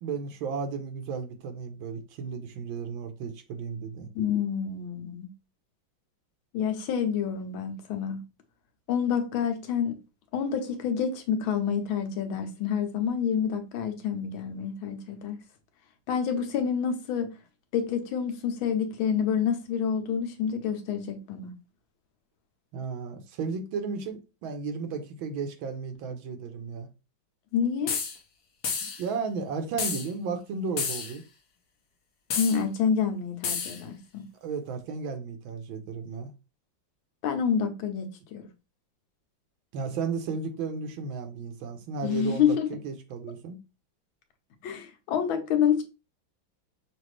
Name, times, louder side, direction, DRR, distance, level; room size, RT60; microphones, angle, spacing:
voice 1, 0.0-4.1 22.7-26.9 28.8-31.2 34.4-36.3 39.7-43.6, right 5 dB, 85° right, 1.6 m, -34 dB
voice 2, 4.1-5.3 6.5-8.2 8.9-10.0 10.3-15.4 16.1-17.3 17.7-21.5 27.5-27.9 32.4-34.2 37.2-38.4 42.0-42.7 44.6-45.8, left 7 dB, 85° left, 1.6 m, -28 dB
sound 1, 27.9-28.2 28.6-29.0 29.8-30.1 30.8-31.1 32.3-32.6 33.4-33.8, left 6 dB, 60° left, 1.2 m, -30 dB
6.1 x 2.5 x 3.2 m
omnidirectional pair, 2.2 m